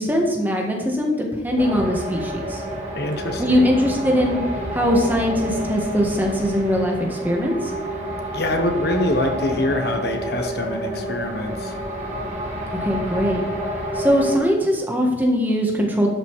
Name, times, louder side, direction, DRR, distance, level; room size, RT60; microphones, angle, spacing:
voice 1, 0.0-2.6 3.4-4.4 4.7-7.7 12.8-13.4 13.9-16.1, equal, 10° right, 0 dB, 1.6 m, -21 dB
sound 1, 1.6-14.4, equal, 35° right, 2.1 m, -29 dB
voice 2, 2.9-3.6 8.3-11.8, left 1 dB, 55° left, 5 dB, 1.0 m, -24 dB
12.0 x 5.6 x 4.8 m, 1.2 s
head